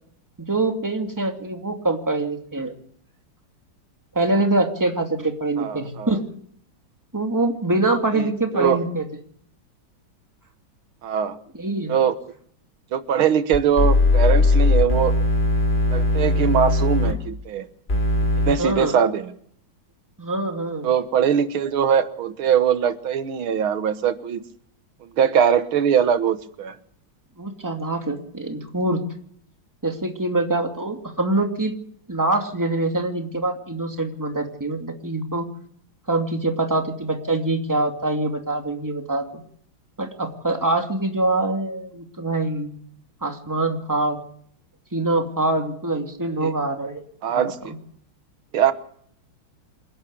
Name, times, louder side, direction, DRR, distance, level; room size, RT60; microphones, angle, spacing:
voice 1, 0.5-2.7 4.1-6.3 7.1-9.1 11.5-11.9 18.6-19.0 20.2-20.9 27.4-29.0 29.8-31.7 32.1-35.5 36.1-39.4 40.0-42.7 43.2-44.2 44.9-47.0 47.3-47.7, right 2 dB, 10° right, 4 dB, 2.4 m, -24 dB
voice 2, 5.6-6.2 8.2-8.8 11.0-11.4 11.9-12.1 12.9-15.1 15.9-17.7 18.3-19.3 20.8-24.4 25.0-26.8 46.4-46.5 47.2-47.7 48.5-48.7, right 8 dB, 80° right, 12 dB, 2.1 m, -21 dB
sound 1, 13.5-17.1 17.9-18.5, left 2 dB, 30° left, 3.5 m, -19 dB
27.5 x 11.5 x 8.5 m, 0.63 s
omnidirectional pair, 2.3 m